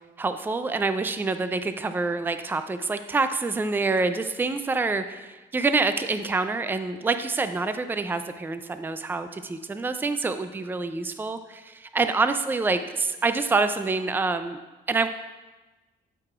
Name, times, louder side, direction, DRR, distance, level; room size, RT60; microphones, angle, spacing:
voice 1, 0.2-14.6 14.9-15.1, right 3 dB, 10° right, 10 dB, 0.4 m, -26 dB
12.5 x 4.8 x 2.4 m, 1.1 s
cardioid pair, 90°, 20 cm